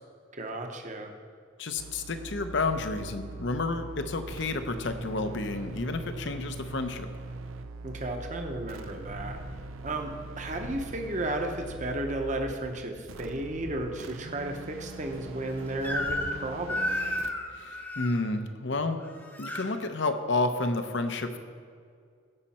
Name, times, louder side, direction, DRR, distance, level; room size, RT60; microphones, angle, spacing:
voice 1, 0.3-1.1 7.8-9.4 9.8-17.1, right 1 dB, 35° right, 4 dB, 0.9 m, -34 dB
voice 2, 1.6-7.1 17.5-19.0 19.4-21.4, left 3 dB, 60° left, 8 dB, 0.7 m, -30 dB
sound 1, 1.8-12.6 13.1-17.3, right 3 dB, 85° right, 0.5 m, -42 dB
sound 2, 2.5-3.3 3.8-7.5 7.9-8.5 8.9-14.5 14.8-16.5, left 1 dB, 85° left, 1.2 m, -49 dB
Crying sobbing / Screech, 15.8-16.4 16.7-18.2 19.0-19.7, left 1 dB, 10° left, 0.8 m, -32 dB
16.5 x 5.6 x 4.3 m, 2.2 s
head